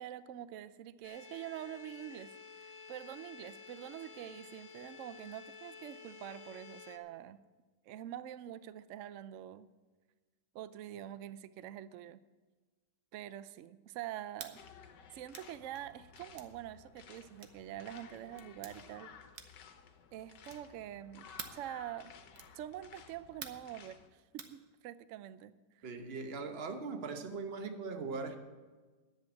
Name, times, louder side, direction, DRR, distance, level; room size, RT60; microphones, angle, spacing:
voice 1, 0.0-2.3 2.9-7.4 7.9-9.7 10.5-12.2 13.1-14.6 15.1-19.1 20.1-22.1 22.5-25.9, right 12 dB, 80° right, 14 dB, 0.7 m, -45 dB
sound 1, 1.0-7.0, left 5 dB, 60° left, 0.3 m, -52 dB
sound 2, 14.3-14.6 15.3-15.5 16.3-16.5 17.4-17.6 18.4-18.8 19.3-19.7 20.4-20.7 21.4-21.7 22.3-22.6 23.4-23.7 24.4-24.6, right 7 dB, 65° right, 1.4 m, -48 dB
sound 3, 14.6-24.1, left 6 dB, 75° left, 1.5 m, -56 dB
voice 2, 25.8-28.4, right 4 dB, 40° right, 6 dB, 1.1 m, -40 dB
10.5 x 7.9 x 8.2 m, 1.3 s
omnidirectional pair, 1.9 m